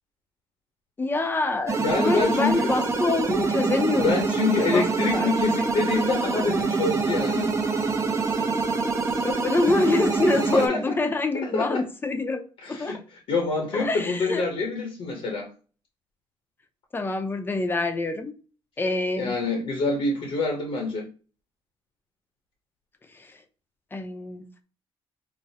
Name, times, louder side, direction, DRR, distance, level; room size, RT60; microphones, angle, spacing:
voice 1, 1.0-5.3 9.2-12.4 12.7-13.0 13.7-14.5 16.9-18.3 18.8-19.4 23.1-23.4 23.9-24.6, left 3 dB, 20° left, 0.6 m, -26 dB
sound 1, 1.7-10.7, right 4 dB, 30° right, 0.6 m, -25 dB
voice 2, 1.8-2.7 4.0-7.5 10.5-10.9 11.3-11.8 12.6-13.0 13.3-15.5 19.2-21.1, left 3 dB, 70° left, 0.9 m, -26 dB
4.7 x 2.0 x 2.7 m
cardioid pair, 115°, 10 cm